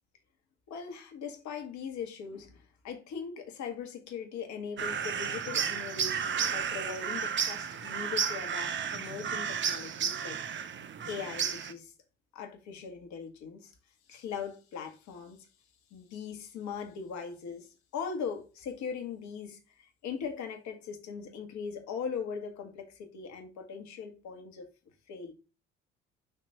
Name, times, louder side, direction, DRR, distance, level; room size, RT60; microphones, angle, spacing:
voice 1, 0.7-10.7 11.1-11.9 12.3-13.7 14.1-15.5 15.9-24.7 25.1-25.3, left 6 dB, 55° left, 1.6 m, -40 dB
sound 1, 4.8-11.7, right 7 dB, 35° right, 0.8 m, -33 dB
6.8 x 3.0 x 5.2 m
hypercardioid pair, 60°, 34 cm